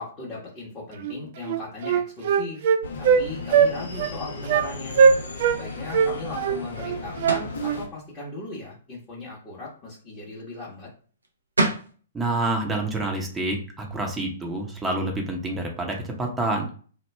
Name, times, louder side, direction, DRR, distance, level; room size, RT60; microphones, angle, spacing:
voice 1, 0.0-2.6 3.0-5.0 5.5-10.9, left 3 dB, 20° left, -7 dB, 1.1 m, -37 dB
Wind instrument woodwind instrument, 1.0-1.2 1.5-3.2 3.5-3.7 4.0-4.1 4.5-4.7 5.0-5.6 5.9-7.8, right 6 dB, 50° right, 0.3 m, -20 dB
sound 1, 2.8-7.9, left 3 dB, 65° left, 0.8 m, -36 dB
sound 2, 7.3-7.6 11.2-11.3 11.6-11.9, right 2 dB, 85° right, 0.7 m, -24 dB
voice 2, 12.1-16.7, right 2 dB, 10° right, 1 dB, 0.8 m, -27 dB
3.0 x 2.2 x 3.3 m, 0.42 s
figure-of-eight pair, 115°, 0 cm